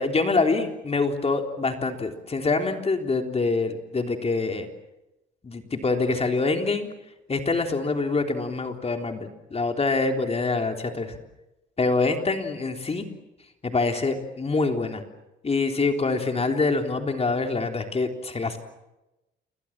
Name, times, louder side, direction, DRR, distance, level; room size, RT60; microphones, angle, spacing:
voice 1, 0.0-4.7 5.4-6.9 7.3-11.2 11.8-13.0 13.6-15.0 15.4-18.6, left 3 dB, 30° left, 5 dB, 3.7 m, -25 dB
29.0 x 23.5 x 7.5 m, 0.95 s
cardioid pair, 90°, 20 cm